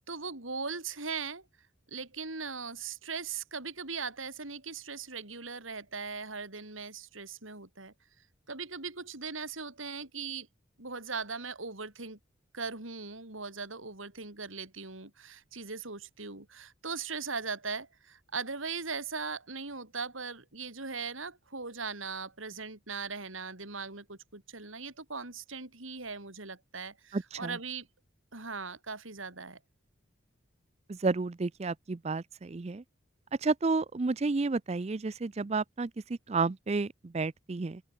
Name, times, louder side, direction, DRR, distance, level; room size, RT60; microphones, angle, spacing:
voice 1, 0.0-1.5 1.9-7.9 8.5-10.5 10.8-12.2 12.5-27.9 28.3-29.6, right 4 dB, 85° right, 4.5 m, -39 dB
voice 2, 27.1-27.6 30.9-32.8 33.4-37.8, right 3 dB, 30° right, 0.4 m, -31 dB
open air
head